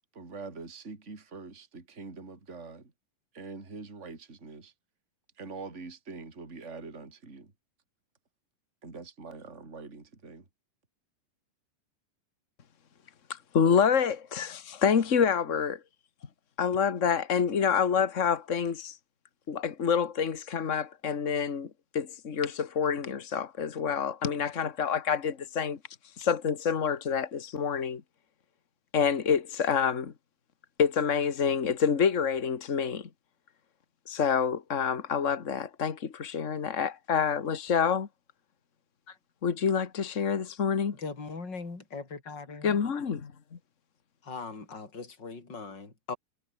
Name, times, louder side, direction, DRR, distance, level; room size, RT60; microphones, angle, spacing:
voice 1, 0.1-2.9 3.3-4.7 5.4-7.5 8.8-10.5, right 4 dB, 20° right, 3.8 m, -44 dB
voice 2, 13.5-15.8 16.6-19.0 19.5-25.8 26.2-28.0 28.9-30.1 30.8-33.1 34.1-38.1 39.4-40.9 42.6-43.3, left 7 dB, 75° left, 0.6 m, -27 dB
voice 3, 41.0-42.8 44.2-46.2, left 4 dB, 30° left, 5.4 m, -40 dB
omnidirectional pair, 3.9 m